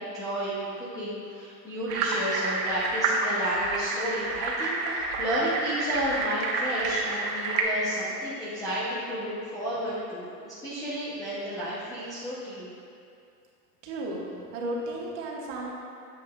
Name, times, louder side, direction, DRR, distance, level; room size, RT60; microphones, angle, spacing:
voice 1, 0.0-12.7, equal, 10° left, -11 dB, 0.4 m, -32 dB
sound 1, 1.9-7.6, right 3 dB, 65° right, 1.1 m, -29 dB
voice 2, 13.8-14.2 14.5-15.7, right 1 dB, 45° right, -2 dB, 1.4 m, -33 dB
9.1 x 7.7 x 2.2 m, 2.5 s
supercardioid pair, 145°, 49 cm